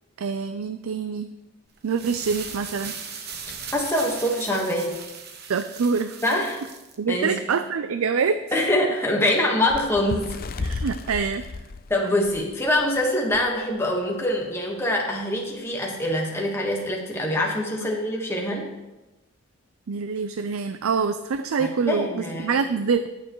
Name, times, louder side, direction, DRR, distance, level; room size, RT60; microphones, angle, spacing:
voice 1, 0.2-1.3 1.8-2.9 5.5-6.2 7.0-8.6 10.6-11.4 19.9-23.1, right 5 dB, 75° right, 10 dB, 0.4 m, -25 dB
sound 1, 1.8-6.9, right 6 dB, 50° right, 1.1 m, -38 dB
voice 2, 3.7-5.0 6.2-6.6 7.1-7.4 8.5-10.4 11.9-18.7 21.6-22.5, left 1 dB, 10° left, -1 dB, 1.3 m, -24 dB
Bird, 9.7-12.9 13.3-13.5 13.8-14.0 14.8-14.9, left 3 dB, 45° left, 0.5 m, -33 dB
20.0 x 6.8 x 3.1 m, 1.0 s
head